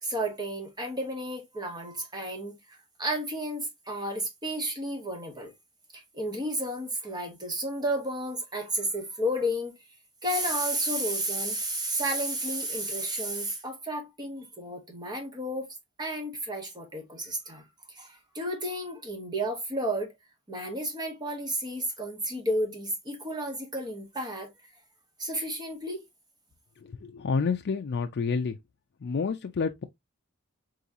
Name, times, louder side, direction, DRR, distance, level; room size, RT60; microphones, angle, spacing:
voice 1, 0.0-5.5 5.9-9.7 10.2-15.7 16.0-20.1 20.5-24.5 25.2-26.0, right 1 dB, 20° right, 1.3 m, -32 dB
voice 2, 26.8-28.6 29.0-29.8, left 5 dB, 50° left, 0.4 m, -29 dB
3.9 x 3.7 x 2.7 m
head